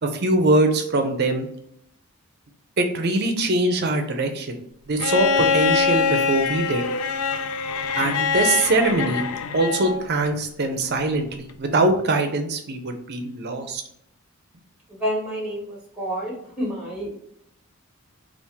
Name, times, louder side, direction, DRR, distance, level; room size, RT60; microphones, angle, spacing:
voice 1, 0.0-1.5 2.8-4.6 4.9-6.8 8.0-9.2 9.5-13.8, right 2 dB, 50° right, 6 dB, 0.5 m, -22 dB
Bowed string instrument, 5.0-10.0 11.5-11.6, left 5 dB, 80° left, 0.3 m, -23 dB
voice 2, 14.9-17.1, equal, 5° right, -4 dB, 1.2 m, -29 dB
3.5 x 2.5 x 2.8 m, 0.71 s
head